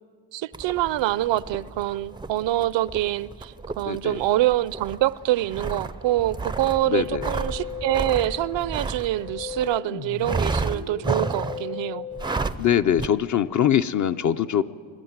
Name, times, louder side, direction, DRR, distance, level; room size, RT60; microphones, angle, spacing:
voice 1, 0.3-12.1, right 15 dB, 65° right, 0.6 m, -25 dB
sound 1, 0.5-9.8 10.2-11.7 12.1-12.7 13.0-13.1, right 3 dB, 10° right, 0.4 m, -32 dB
voice 2, 3.9-4.2 6.9-7.3 12.6-14.6, left 9 dB, 40° left, 0.5 m, -22 dB
Musical instrument, 6.7-12.7, left 7 dB, 60° left, 1.8 m, -37 dB
21.0 x 14.0 x 9.4 m
cardioid pair, 110°, 48 cm